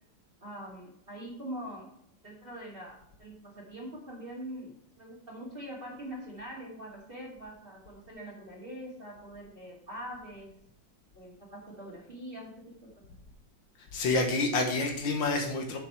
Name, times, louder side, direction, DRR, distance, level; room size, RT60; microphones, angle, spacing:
voice 1, 0.4-1.9 2.2-10.5 11.1-12.5 12.8-12.9, equal, 30° right, -5 dB, 2.7 m, -43 dB
voice 2, 13.9-15.8, left 3 dB, 80° left, 2 dB, 1.9 m, -28 dB
8.4 x 7.0 x 4.6 m, 0.70 s
omnidirectional pair, 2.1 m